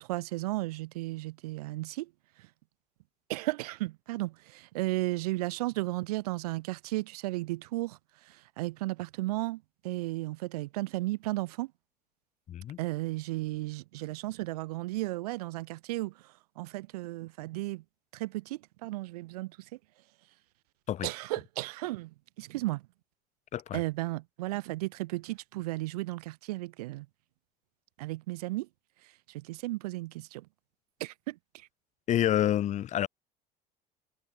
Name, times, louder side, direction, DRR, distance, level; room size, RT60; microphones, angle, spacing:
voice 1, 0.0-2.1 2.4-2.5 3.3-11.7 12.8-17.8 18.1-19.7 21.0-22.8 23.7-27.1 28.0-28.7 29.3-30.5 31.0-31.7, right 19 dB, 65° right, 0.9 m, -34 dB
voice 2, 12.5-12.8 20.9-21.1 23.5-23.8 32.1-33.1, left 11 dB, 35° left, 0.7 m, -28 dB
figure-of-eight pair, 60°, 21 cm